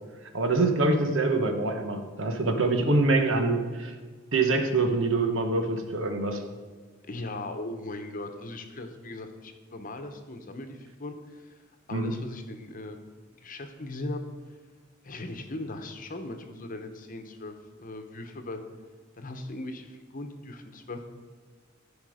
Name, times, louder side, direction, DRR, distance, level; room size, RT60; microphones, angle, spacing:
voice 1, 0.3-3.9 4.3-6.4 11.9-12.1, right 2 dB, 70° right, 5 dB, 1.1 m, -25 dB
voice 2, 7.1-11.4 11.9-13.1 13.4-14.2 15.0-18.6 19.2-21.1, left 2 dB, 45° left, 6 dB, 1.0 m, -39 dB
13.5 x 5.2 x 5.0 m, 1.5 s
head